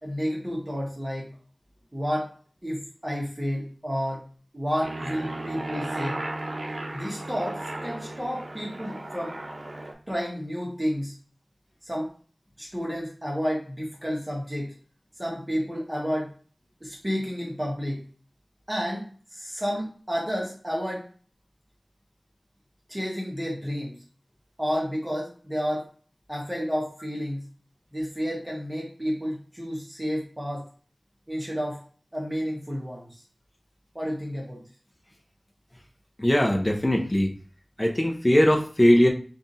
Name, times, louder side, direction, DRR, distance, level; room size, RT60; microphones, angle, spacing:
voice 1, 0.0-1.3 1.9-2.3 2.6-4.3 4.5-6.2 6.9-9.4 10.1-11.1 11.8-12.1 12.6-14.7 15.2-16.3 16.8-18.0 18.7-19.1 19.3-21.1 22.9-24.0 24.6-25.9 26.3-27.4 27.9-30.7 31.3-31.8 32.1-33.1 33.9-34.6, equal, 20° right, -3 dB, 1.4 m, -30 dB
Aircraft, 4.8-9.9, right 2 dB, 65° right, 0.6 m, -35 dB
voice 2, 36.2-37.3 37.8-39.1, equal, 25° left, 2 dB, 0.8 m, -20 dB
3.6 x 2.5 x 4.1 m, 0.40 s
wide cardioid pair, 55°, 0 cm